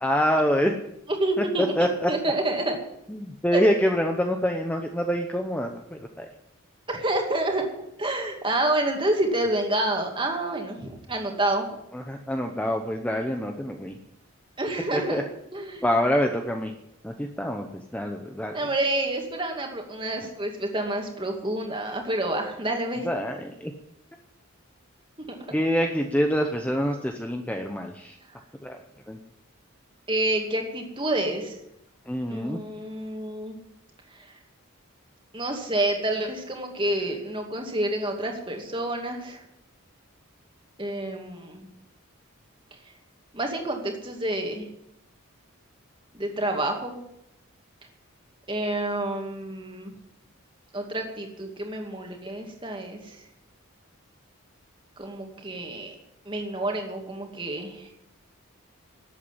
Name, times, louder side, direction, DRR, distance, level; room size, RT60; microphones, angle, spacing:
voice 1, 0.0-0.7 1.4-2.1 3.1-6.3 11.9-14.0 14.9-15.2 15.8-16.7 17.0-18.7 23.0-23.7 25.5-28.2 28.6-28.8 29.1-29.2 32.1-32.6, equal, 5° left, 3 dB, 0.8 m, -26 dB
voice 2, 1.2-2.8 3.5-3.7 6.9-7.7 8.0-11.7 14.6-15.2 15.5-15.8 18.5-23.1 25.5-25.6 30.1-31.6 32.3-33.6 34.2-34.3 35.3-39.4 40.8-41.7 43.3-44.7 46.1-47.0 48.5-49.9 50.7-53.2 55.0-56.0 56.3-57.9, right 1 dB, 25° right, 2 dB, 2.4 m, -28 dB
12.5 x 8.4 x 9.9 m, 0.81 s
head